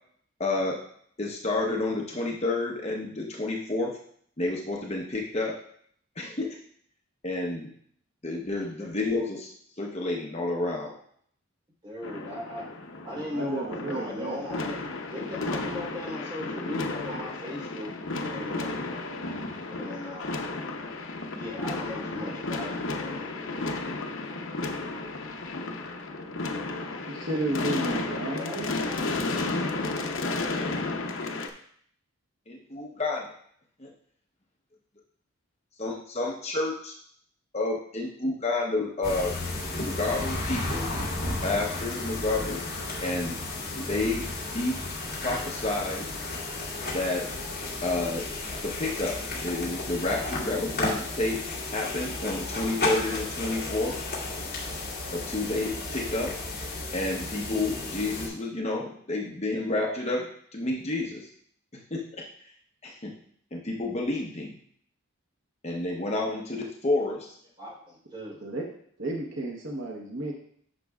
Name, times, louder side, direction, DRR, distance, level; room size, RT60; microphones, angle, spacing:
voice 1, 0.4-0.8 1.2-4.0 4.4-5.6 6.2-6.5 7.2-7.7 8.2-9.5 9.8-10.9 32.5-33.3 33.8-33.9 35.8-36.9 37.5-39.4 39.8-40.9 41.4-42.6 43.0-43.4 43.9-44.3 44.5-44.8 45.2-46.1 46.9-47.3 47.8-48.3 48.6-51.4 51.7-54.0 55.1-56.4 56.9-61.3 61.9-62.2 62.8-63.1 63.5-64.6 65.6-67.3, left 2 dB, 30° left, -1 dB, 0.9 m, -30 dB
voice 2, 11.8-12.7 13.0-17.9 18.2-18.8 19.7-20.6 21.2-23.3 27.3-28.0 28.2-28.8 67.6-68.4, left 1 dB, 25° right, -6 dB, 3.3 m, -38 dB
sound 1, 12.0-31.5, left 2 dB, 65° left, 0.7 m, -33 dB
voice 3, 13.3-14.4 27.1-28.7 68.4-68.7 69.0-70.3, right 1 dB, 60° right, 0 dB, 1.0 m, -32 dB
sound 2, 39.0-58.3, left 2 dB, 50° left, 2.2 m, -33 dB
10.5 x 6.1 x 2.4 m, 0.63 s
head